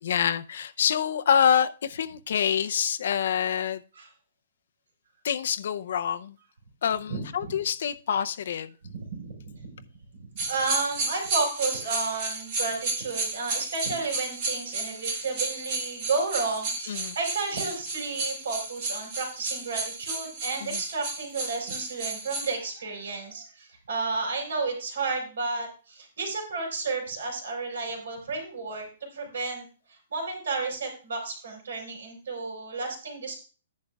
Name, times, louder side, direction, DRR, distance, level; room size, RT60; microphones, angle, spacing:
voice 1, 0.0-3.8 5.2-6.4 6.8-8.7 16.9-17.1 20.6-20.8, left 8 dB, 55° left, 10 dB, 0.6 m, -26 dB
voice 2, 7.1-7.5 8.8-9.7 10.2-33.3, right 4 dB, 85° right, 3 dB, 5.0 m, -32 dB
sound 1, 10.4-22.6, right 3 dB, 30° right, 2.0 m, -33 dB
13.5 x 10.5 x 2.4 m, 0.36 s
hypercardioid pair, 175°, 0 cm